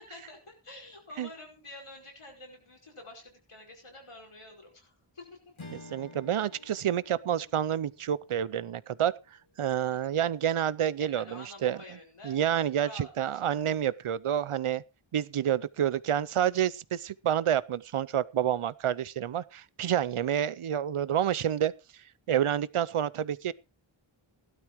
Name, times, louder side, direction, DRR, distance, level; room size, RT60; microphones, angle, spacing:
voice 1, 0.0-5.4 9.8-10.1 11.1-12.4 12.8-13.7, left 2 dB, 85° left, 4.9 m, -48 dB
Strum, 5.6-10.2, left 2 dB, 70° left, 2.2 m, -52 dB
voice 2, 5.7-9.1 9.6-11.8 12.2-14.8 15.1-21.7 22.3-23.5, right 10 dB, 80° right, 0.6 m, -28 dB
16.5 x 12.0 x 3.1 m
wide cardioid pair, 55°, 50 cm